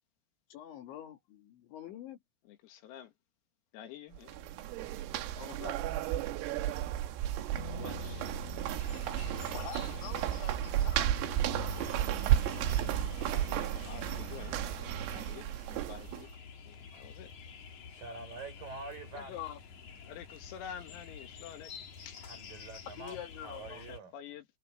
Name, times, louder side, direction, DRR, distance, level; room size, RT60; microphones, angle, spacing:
voice 1, 0.5-2.2 5.4-5.8 6.2-6.4 9.5-11.2 16.9-17.0 19.1-19.6 23.0-23.8, left 10 dB, 65° left, 4.4 m, -46 dB
voice 2, 2.5-3.1 3.7-4.5 7.0-7.1 7.5-8.4 13.1-16.3 16.6-17.3 20.0-21.7 22.0-22.2 23.9-24.4, left 9 dB, 85° left, 4.9 m, -49 dB
sound 1, 4.2-16.3, right 12 dB, 80° right, 4.1 m, -33 dB
sound 2, 7.5-15.5, left 1 dB, 15° left, 6.5 m, -45 dB
sound 3, 8.8-24.0, left 6 dB, 45° left, 3.0 m, -50 dB
voice 3, 17.9-19.4 22.2-24.2, right 3 dB, 40° right, 7.6 m, -46 dB
omnidirectional pair, 6.0 m